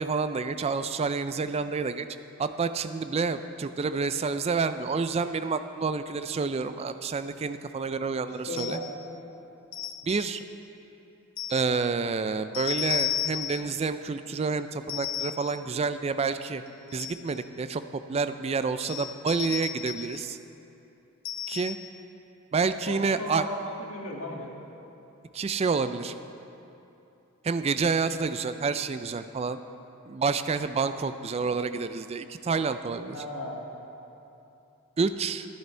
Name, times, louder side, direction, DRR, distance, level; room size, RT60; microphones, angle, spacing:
voice 1, 0.0-2.1 2.4-8.8 10.0-10.4 11.5-16.6 16.9-20.4 21.5-21.8 22.5-23.5 25.3-26.1 27.4-29.6 30.1-33.2 35.0-35.5, right 4 dB, 30° right, 11 dB, 0.3 m, -29 dB
voice 2, 8.5-9.0 22.9-24.5 33.1-33.6, left 1 dB, 70° left, -2 dB, 1.7 m, -36 dB
sound 1, 8.6-9.0 9.7-10.4 11.4-11.7 12.5-13.7 14.9-15.5 16.7-17.3 18.8-20.2 21.2-22.0, left 11 dB, 40° left, 0.5 m, -33 dB
11.5 x 11.0 x 4.4 m, 2.9 s
head